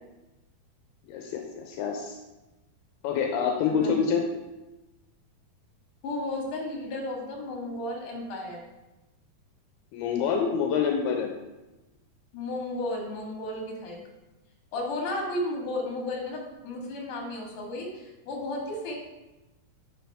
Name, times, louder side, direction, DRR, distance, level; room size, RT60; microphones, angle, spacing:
voice 1, 1.1-2.2 3.0-4.2 9.9-11.3, left 6 dB, 85° left, 2 dB, 2.7 m, -26 dB
voice 2, 3.6-4.1 6.0-8.6 12.3-14.0 14.7-18.9, left 1 dB, 60° left, -1 dB, 3.2 m, -33 dB
10.5 x 7.3 x 3.5 m, 1.0 s
omnidirectional pair, 4.5 m